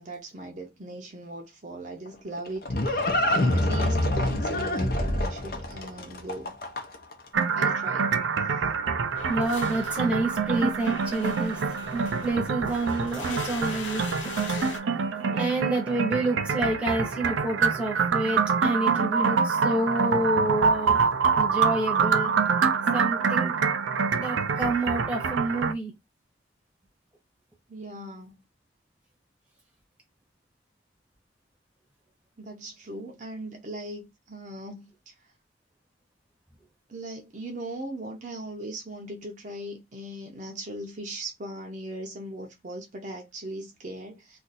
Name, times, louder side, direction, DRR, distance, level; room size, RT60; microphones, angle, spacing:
voice 1, 0.0-6.5 7.5-8.1 27.7-28.5 32.4-35.2 36.9-44.4, right 1 dB, 40° right, 0.6 m, -39 dB
Livestock farm animals working animals, 2.1-7.1, left 1 dB, 50° left, 0.6 m, -26 dB
sound 1, 7.3-25.7, right 5 dB, 90° right, 0.4 m, -26 dB
sound 2, 9.2-14.8, left 4 dB, 90° left, 0.6 m, -40 dB
voice 2, 9.3-11.6 11.9-14.1 15.2-21.0 21.4-22.3 22.9-23.6 24.2-25.9, right 2 dB, 5° right, 0.9 m, -28 dB
2.5 x 2.5 x 4.0 m
head